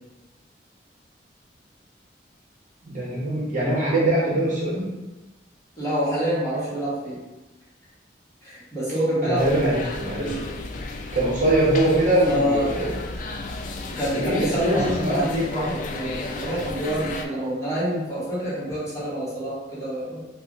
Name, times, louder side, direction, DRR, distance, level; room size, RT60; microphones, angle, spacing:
voice 1, 2.9-4.9 9.2-10.4 11.1-12.9 14.1-15.3, right 1 dB, 45° right, -6 dB, 0.9 m, -22 dB
voice 2, 5.8-7.2 8.4-9.8 10.1-10.4 12.3-12.7 13.9-20.2, equal, 20° left, -10 dB, 1.3 m, -27 dB
sound 1, 9.4-17.3, left 2 dB, 45° left, 0.3 m, -33 dB
2.8 x 2.4 x 3.7 m, 1.1 s
head